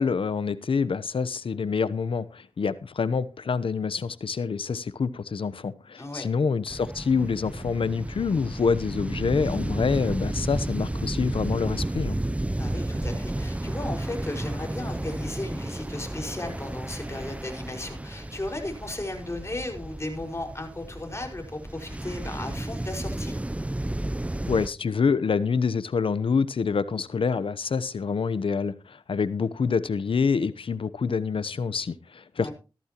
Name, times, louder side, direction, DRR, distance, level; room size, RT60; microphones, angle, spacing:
voice 1, 0.0-12.2 24.5-32.5, left 5 dB, 80° left, 0.8 m, -26 dB
voice 2, 6.0-6.3 12.5-23.3 32.4-32.5, left 2 dB, 30° left, 5.2 m, -35 dB
sound 1, 6.7-24.7, right 1 dB, 15° right, 0.5 m, -32 dB
15.0 x 13.5 x 3.0 m
cardioid pair, 45°, 9 cm